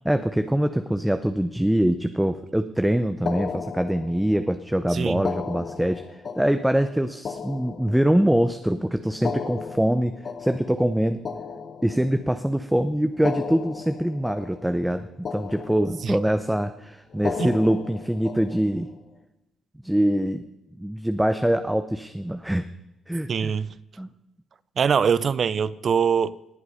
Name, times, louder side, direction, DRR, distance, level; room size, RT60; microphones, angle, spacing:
voice 1, 0.0-11.2 11.8-18.9 19.8-20.5 20.8-22.7 23.1-23.5 24.0-24.1, right 1 dB, 5° right, 9 dB, 0.7 m, -24 dB
sound 1, 3.3-4.5 5.1-8.4 9.1-12.4 13.1-15.0 15.2-16.3 17.1-18.9, left 5 dB, 50° left, 1.1 m, -35 dB
voice 2, 4.9-5.2 16.0-16.2 17.4-17.5 23.3-23.8 24.8-26.4, right 6 dB, 50° right, 18 dB, 0.5 m, -23 dB
18.5 x 7.9 x 5.5 m, 0.93 s
cardioid pair, 90°, 0 cm